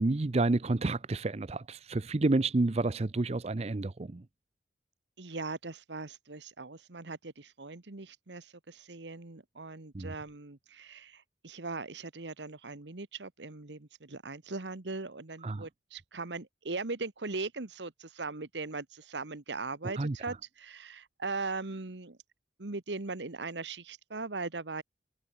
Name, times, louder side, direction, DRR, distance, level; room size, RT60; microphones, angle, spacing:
voice 1, 0.0-4.2 9.9-10.1 15.4-15.6 20.0-20.1, right 2 dB, 35° right, 0.6 m, -29 dB
voice 2, 5.2-22.2 22.6-24.8, right 3 dB, 85° right, 1.4 m, -39 dB
head